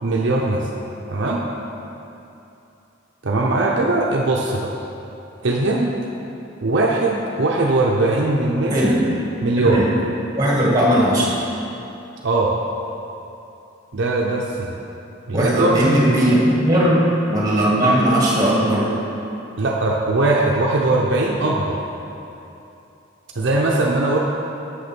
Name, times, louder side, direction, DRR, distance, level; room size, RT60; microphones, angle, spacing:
voice 1, 0.0-0.7 1.1-1.4 3.2-4.7 5.4-5.9 6.6-9.0 9.4-9.8 12.2-12.5 13.9-14.8 15.3-15.9 19.6-21.8 23.4-24.2, right 2 dB, 60° right, -2 dB, 0.7 m, -20 dB
voice 2, 10.4-11.3 15.3-18.9, right 1 dB, 20° right, -5 dB, 1.9 m, -17 dB
7.7 x 6.5 x 6.0 m, 2.9 s
head